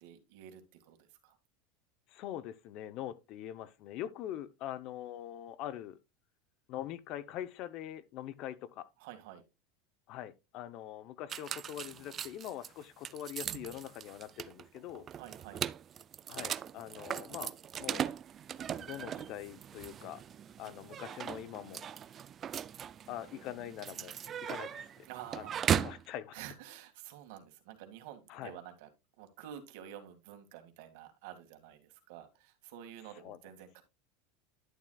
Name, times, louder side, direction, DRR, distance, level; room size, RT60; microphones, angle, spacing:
voice 1, 0.0-1.4 9.0-9.4 15.2-15.6 25.1-25.7 26.3-28.9 29.2-33.8, right 10 dB, 70° right, 2.0 m, -49 dB
voice 2, 2.1-6.0 6.7-8.9 10.1-15.1 16.3-17.5 17.8-18.1 18.8-20.2 20.6-21.9 23.1-25.1 25.3-25.5 25.8-26.4 28.3-28.5 33.2-33.4, left 11 dB, 50° left, 0.7 m, -43 dB
sound 1, 11.3-26.0, right 9 dB, 30° right, 0.4 m, -38 dB
11.0 x 7.2 x 2.3 m
supercardioid pair, 125°, 0 cm